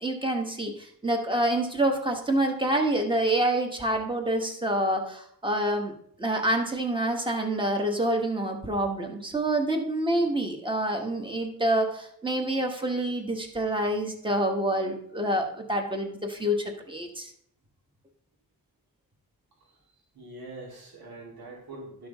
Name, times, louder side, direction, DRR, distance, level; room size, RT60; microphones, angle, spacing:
voice 1, 0.0-5.9 6.2-17.3, right 1 dB, 15° right, 3 dB, 1.2 m, -27 dB
voice 2, 20.1-22.1, right 2 dB, 90° right, -3 dB, 2.6 m, -43 dB
12.0 x 6.2 x 3.5 m, 0.67 s
wide cardioid pair, 145°, 36 cm